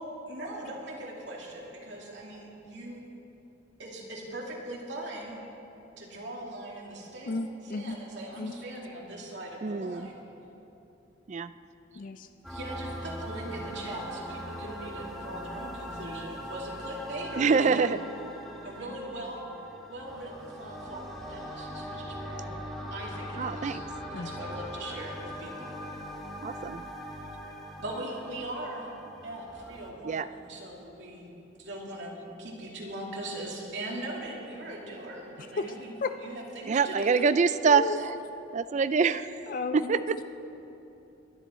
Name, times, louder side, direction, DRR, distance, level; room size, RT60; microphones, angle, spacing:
voice 1, 0.3-3.0 3.8-5.4 6.0-7.3 7.6-10.2 12.5-17.8 18.6-19.5 19.9-22.6 22.9-23.8 24.1-25.7 27.8-28.9 29.2-31.3 31.6-37.4, right 1 dB, 70° right, -3 dB, 2.5 m, -40 dB
voice 2, 7.3-8.0 8.4-8.5 12.0-12.3 24.1-24.3 35.6-35.7 36.0-36.2 37.6-38.0 39.5-40.2, left 3 dB, 45° left, 9 dB, 0.4 m, -33 dB
voice 3, 9.6-10.1 11.3-11.5 17.4-18.0 23.4-23.8 26.4-26.8 30.0-30.3 36.7-38.1 38.5-39.3 39.7-40.2, right 5 dB, 40° right, 14 dB, 0.4 m, -25 dB
sound 1, 12.4-29.9, equal, ahead, 1.6 m, -41 dB
22.5 x 10.0 x 4.3 m, 3.0 s
head